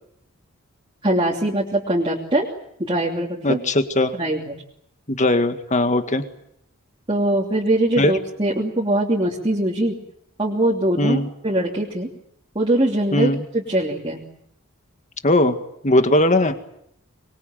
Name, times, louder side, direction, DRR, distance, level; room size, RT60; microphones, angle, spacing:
voice 1, 1.0-2.5 2.8-3.6 4.1-4.5 7.1-10.0 10.4-12.1 12.5-14.2, right 1 dB, 25° right, -4 dB, 3.0 m, -22 dB
voice 2, 3.4-4.1 5.1-6.3 8.0-8.1 11.0-11.3 13.1-13.4 15.2-15.6 15.8-16.7, left 1 dB, 35° left, 8 dB, 2.0 m, -19 dB
25.5 x 22.0 x 9.2 m, 0.74 s
head